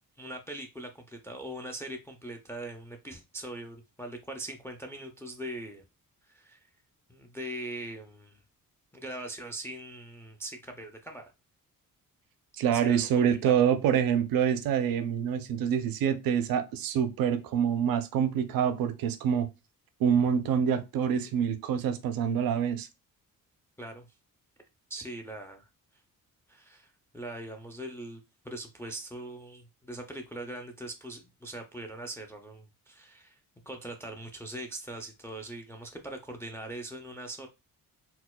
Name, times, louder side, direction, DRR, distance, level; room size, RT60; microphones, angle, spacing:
voice 1, 0.2-5.8 6.3-6.6 7.1-8.4 8.9-11.2 12.7-13.6 23.8-24.1 24.9-25.7 26.5-33.4 33.7-37.5, right 1 dB, 10° left, 0.3 m, -41 dB
voice 2, 12.6-19.5 20.0-22.9, right 8 dB, 75° right, 0.6 m, -26 dB
4.1 x 2.2 x 2.2 m
cardioid pair, 130°, 35 cm